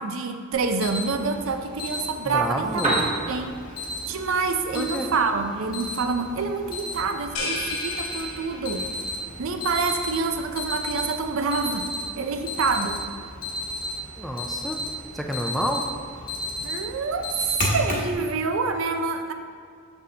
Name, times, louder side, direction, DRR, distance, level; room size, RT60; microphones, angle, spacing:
voice 1, 0.0-2.8 3.3-3.6 4.1-8.9 9.4-11.9 12.2-13.0 16.6-19.3, right 4 dB, 70° right, 6 dB, 0.5 m, -27 dB
Alarm, 0.5-18.1, left 1 dB, 40° left, 1.2 m, -34 dB
voice 2, 2.3-3.1 4.7-5.1 14.2-14.8 15.1-15.9, equal, ahead, 2 dB, 0.3 m, -29 dB
Piano, 2.6-10.6, right 1 dB, 35° right, 1.1 m, -35 dB
sound 1, 7.4-9.1, left 2 dB, 85° left, 0.9 m, -32 dB
6.5 x 6.1 x 2.8 m, 2.3 s
head